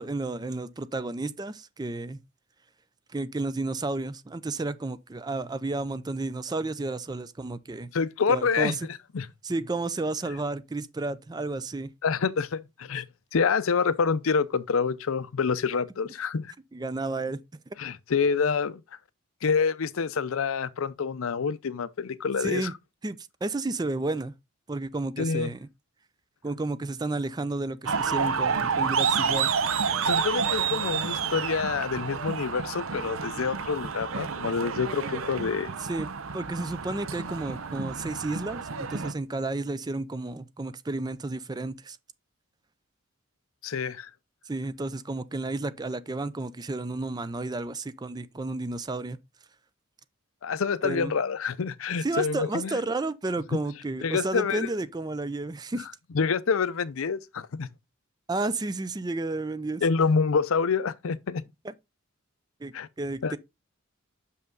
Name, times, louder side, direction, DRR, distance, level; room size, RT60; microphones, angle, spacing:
voice 1, 0.0-2.2 3.1-7.9 8.3-8.8 9.4-11.9 16.7-17.4 22.4-22.7 23.0-24.3 24.7-25.7 26.4-29.5 35.8-36.1 36.3-42.0 44.5-49.2 50.8-51.1 52.0-55.9 58.3-59.8 61.6-61.7 62.6-63.4, right 2 dB, 20° right, 0.4 m, -32 dB
voice 2, 7.9-9.3 12.0-13.1 13.3-16.5 17.8-18.8 19.4-22.7 25.2-25.5 30.0-35.7 43.6-44.1 50.4-52.8 54.0-54.7 56.1-57.7 59.8-61.4 62.7-62.9 63.2-63.4, left 5 dB, 80° left, 0.6 m, -27 dB
sound 1, 27.8-39.1, right 6 dB, 80° right, 0.7 m, -29 dB
6.4 x 5.6 x 3.8 m
head